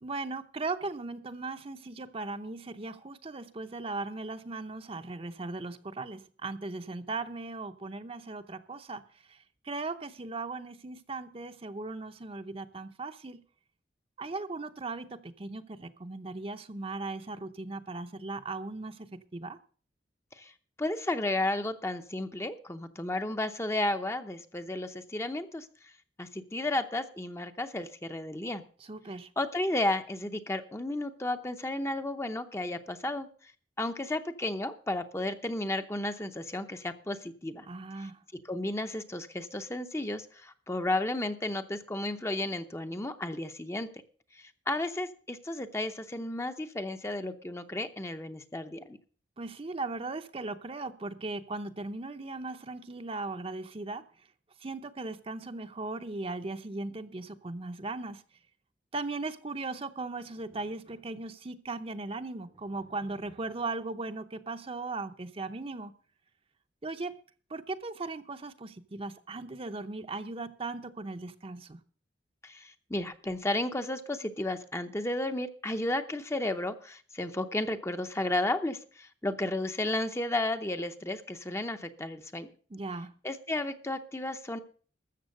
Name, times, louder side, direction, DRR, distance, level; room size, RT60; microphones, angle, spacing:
voice 1, 0.0-9.0 9.3-13.4 14.2-19.6 28.8-29.3 37.7-38.2 49.4-54.0 54.6-58.2 58.9-65.9 66.8-67.2 67.5-71.8 82.7-83.1, right 3 dB, 30° right, 0.7 m, -38 dB
voice 2, 20.8-25.7 26.2-28.6 29.4-33.3 33.8-37.7 38.0-38.1 38.5-43.9 44.3-49.0 72.4-82.5 83.2-84.6, left 1 dB, 15° left, 0.7 m, -33 dB
13.5 x 7.2 x 6.6 m
head